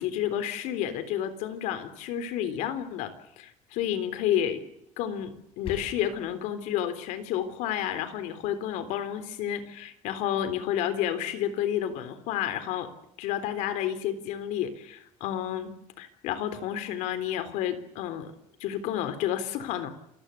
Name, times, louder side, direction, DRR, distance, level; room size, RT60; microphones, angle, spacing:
voice 1, 0.0-3.1 3.4-4.6 5.0-12.9 13.2-15.7 16.0-18.3 18.6-19.9, left 10 dB, 85° left, 12 dB, 3.6 m, -30 dB
sound 1, 5.2-6.2, left 7 dB, 50° left, 7.3 m, -42 dB
28.0 x 18.0 x 8.4 m, 0.77 s
cardioid pair, 175°, 12 cm